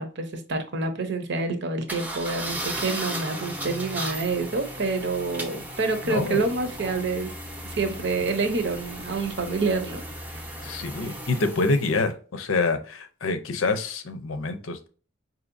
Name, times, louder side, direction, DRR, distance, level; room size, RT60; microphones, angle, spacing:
voice 1, 0.0-7.3 7.8-10.0 10.3-10.4, right 3 dB, 55° right, 7 dB, 0.7 m, -27 dB
sound 1, 1.9-12.0, right 1 dB, 10° right, 0.7 m, -36 dB
voice 2, 6.0-6.4 10.6-14.9, left 3 dB, 75° left, 8 dB, 0.6 m, -26 dB
5.0 x 2.8 x 2.5 m, 0.38 s
head